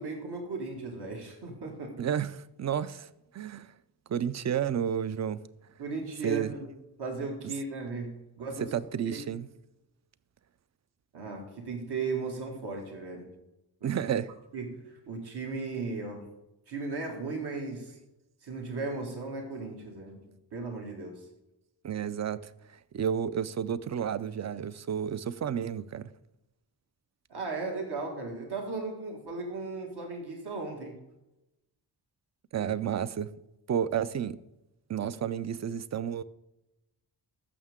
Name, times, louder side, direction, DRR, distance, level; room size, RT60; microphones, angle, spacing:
voice 1, 0.0-1.9 5.8-6.6 7.0-8.7 9.1-9.2 11.1-13.3 13.8-13.9 14.5-16.3 16.7-18.0 18.4-20.2 20.5-21.2 27.3-31.0, right 3 dB, 70° right, 2.1 m, -36 dB
voice 2, 2.0-3.7 4.1-5.4 6.2-6.6 7.4-7.6 8.5-9.5 13.8-14.3 21.8-26.1 32.5-33.3 33.7-34.4 34.9-36.2, right 8 dB, 40° right, 0.4 m, -31 dB
14.5 x 6.5 x 3.6 m
wide cardioid pair, 140°, 42 cm